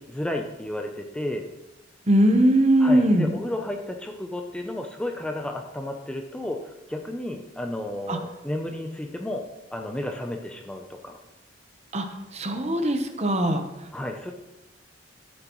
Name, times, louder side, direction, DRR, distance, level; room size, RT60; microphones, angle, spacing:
voice 1, 0.0-1.4 2.8-9.4 9.7-11.2 13.9-14.3, left 1 dB, 5° left, 3 dB, 0.5 m, -32 dB
voice 2, 2.1-3.3 8.1-8.2 11.9-12.1 12.3-13.6, right 1 dB, 35° right, 5 dB, 0.9 m, -20 dB
12.5 x 7.7 x 3.1 m, 0.95 s
head